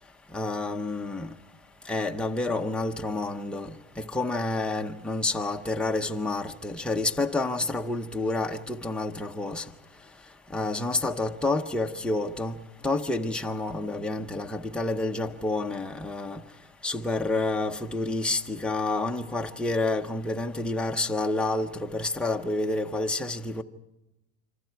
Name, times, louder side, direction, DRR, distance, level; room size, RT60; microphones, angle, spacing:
voice 1, 0.3-1.3 1.9-3.8 4.1-9.6 10.5-12.5 12.8-16.4 16.8-23.6, left 2 dB, 5° left, 0.8 m, -29 dB
26.5 x 25.5 x 4.6 m
cardioid pair, 150°, 40 cm